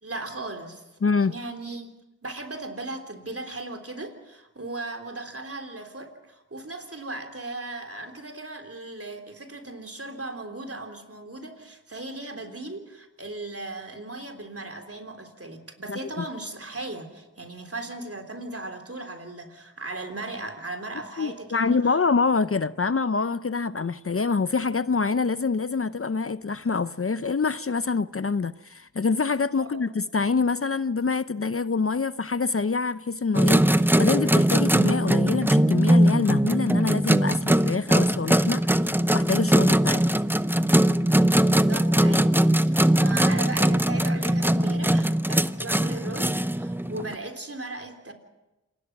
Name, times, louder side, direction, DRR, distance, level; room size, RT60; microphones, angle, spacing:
voice 1, 0.0-0.8 1.3-1.9 2.2-22.0 29.6-29.8 41.5-48.1, right 2 dB, 45° right, 3.5 m, -37 dB
voice 2, 1.0-1.3 15.9-16.2 21.2-38.6 39.1-40.0, left 4 dB, 45° left, 0.6 m, -26 dB
sound 1, 33.4-47.1, right 1 dB, 5° right, 0.7 m, -21 dB
27.5 x 19.5 x 6.0 m
wide cardioid pair, 40°, 32 cm